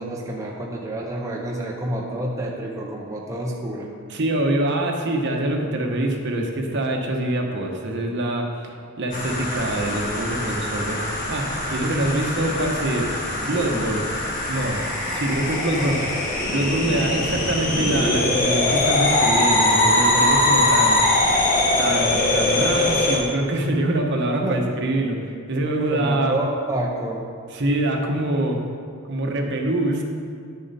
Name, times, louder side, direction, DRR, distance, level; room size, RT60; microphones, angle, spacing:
voice 1, 0.0-3.9 24.4-24.7 25.9-27.3, right 1 dB, 15° right, -2 dB, 0.7 m, -28 dB
voice 2, 4.1-14.2 14.5-14.8 15.1-16.2 16.5-21.5 21.8-26.4 27.5-28.6 29.1-30.0, right 1 dB, 55° right, 2 dB, 1.0 m, -25 dB
sound 1, 9.1-23.2, left 1 dB, 40° left, 1.4 m, -22 dB
Screaming, 18.8-19.4 20.8-21.1, equal, 60° left, 2.5 m, -37 dB
10.0 x 6.8 x 4.1 m, 2.2 s
head